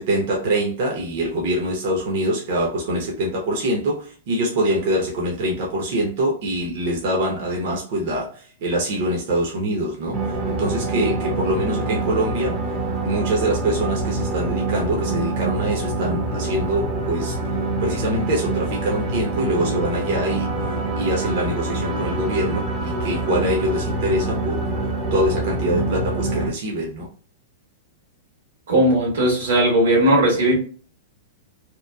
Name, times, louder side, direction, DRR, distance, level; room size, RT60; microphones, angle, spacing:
voice 1, 0.0-12.6 13.0-17.4 17.8-24.8 25.1-27.1, right 1 dB, 60° right, 0.8 m, -24 dB
sound 1, 10.1-26.5, right 3 dB, 30° right, 0.7 m, -25 dB
voice 2, 28.7-30.5, right 1 dB, 80° right, 1.4 m, -17 dB
2.9 x 2.2 x 2.2 m
hypercardioid pair, 120°, 0 cm